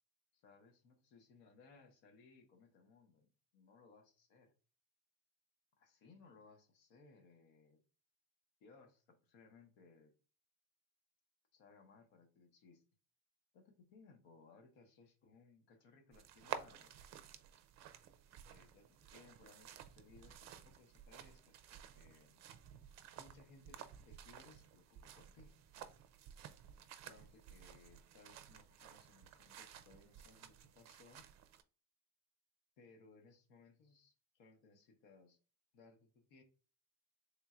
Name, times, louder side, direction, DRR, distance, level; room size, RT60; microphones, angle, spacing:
voice 1, 0.3-4.5 5.8-7.8 8.6-10.1 11.5-12.8 13.5-17.0 18.5-22.4 23.2-25.6 27.0-31.3 32.8-35.4 35.7-36.4, left 4 dB, 85° left, 1.3 m, -64 dB
sound 1, 16.1-31.6, right 9 dB, 40° right, 0.4 m, -53 dB
3.7 x 2.4 x 4.3 m
cardioid pair, 150°, 43 cm